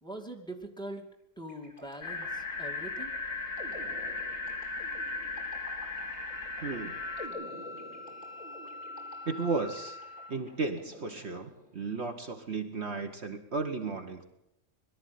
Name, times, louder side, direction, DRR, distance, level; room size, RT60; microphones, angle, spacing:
voice 1, 0.0-1.1 1.4-3.2, right 1 dB, 5° left, 1 dB, 2.5 m, -42 dB
sound 1, 1.5-11.9, equal, 30° left, 4.3 m, -50 dB
sound 2, 2.0-7.3, left 3 dB, 75° left, 3.5 m, -37 dB
Wind instrument woodwind instrument, 6.3-10.3, left 3 dB, 40° right, 3.5 m, -44 dB
voice 2, 6.6-7.0 9.3-10.0 10.3-14.2, right 4 dB, 55° right, 6 dB, 1.6 m, -34 dB
22.0 x 12.5 x 9.5 m, 0.84 s
omnidirectional pair, 1.4 m